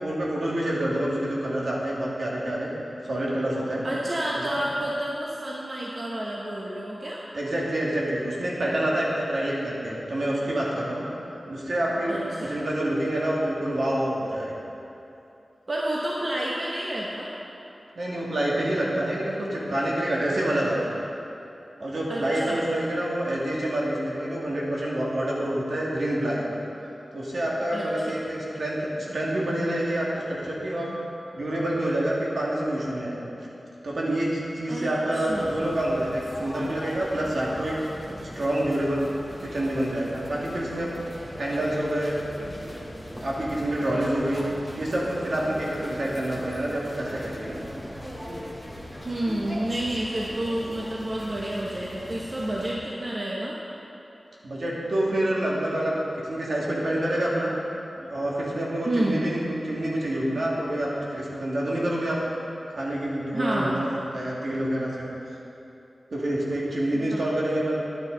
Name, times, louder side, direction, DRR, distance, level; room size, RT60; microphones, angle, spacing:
voice 1, 0.0-2.7 3.0-3.8 7.3-11.1 11.5-14.5 18.0-21.0 21.8-26.6 27.1-30.9 31.2-33.2 33.8-37.9 38.4-39.1 39.4-41.0 41.4-42.2 42.6-42.7 43.2-44.5 44.8-47.6 54.4-57.5 58.0-62.2 62.8-65.1 66.1-67.8, right 1 dB, 70° right, -5 dB, 2.0 m, -27 dB
voice 2, 3.8-7.2 12.1-12.6 15.7-17.3 22.1-22.7 27.7-28.2 34.7-34.9 35.1-35.6 49.1-53.6 58.8-59.2 63.3-63.8 66.9-67.4, right 1 dB, 45° right, -4 dB, 1.0 m, -30 dB
sound 1, 35.3-52.7, equal, 10° right, 1.6 m, -40 dB
11.0 x 9.5 x 3.9 m, 2.8 s
wide cardioid pair, 105°, 0 cm